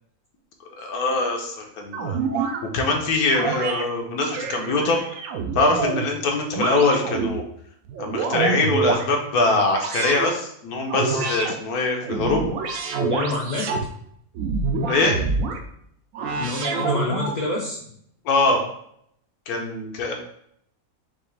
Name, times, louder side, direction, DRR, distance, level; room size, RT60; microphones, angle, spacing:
voice 1, 0.8-2.2 2.6-5.0 5.5-7.4 8.0-12.4 14.9-15.2 18.2-18.6 19.5-20.1, left 3 dB, 85° left, 2 dB, 1.3 m, -23 dB
sound 1, 1.9-2.6 3.3-3.8 4.3-6.1 6.5-7.4 7.9-9.1 9.7-10.3 10.9-11.5 12.0-13.9 14.4-15.6 16.1-17.4, right 4 dB, 70° right, 0.9 m, -26 dB
voice 2, 13.0-13.7 16.4-17.8, left 2 dB, 60° left, -3 dB, 0.4 m, -27 dB
5.6 x 2.4 x 3.2 m, 0.69 s
omnidirectional pair, 1.5 m